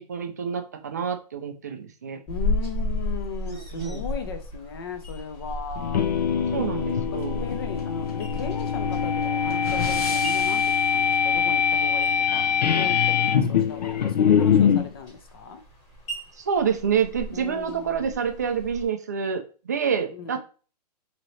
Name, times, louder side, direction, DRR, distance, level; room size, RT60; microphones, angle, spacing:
voice 1, 0.0-2.2 3.5-4.0 6.5-7.5 16.4-20.4, right 7 dB, 25° right, 6 dB, 0.3 m, -28 dB
voice 2, 2.3-6.0 6.6-6.7 7.3-12.4 12.7-15.6 17.3-18.3 20.1-20.4, left 5 dB, 35° left, 7 dB, 0.6 m, -37 dB
sound 1, 2.3-18.8, left 2 dB, 20° left, 1.1 m, -35 dB
sound 2, 5.8-14.9, left 7 dB, 90° left, 0.7 m, -23 dB
sound 3, 7.1-11.0, left 5 dB, 60° left, 1.1 m, -37 dB
4.0 x 2.9 x 3.1 m, 0.37 s
hypercardioid pair, 180°, 21 cm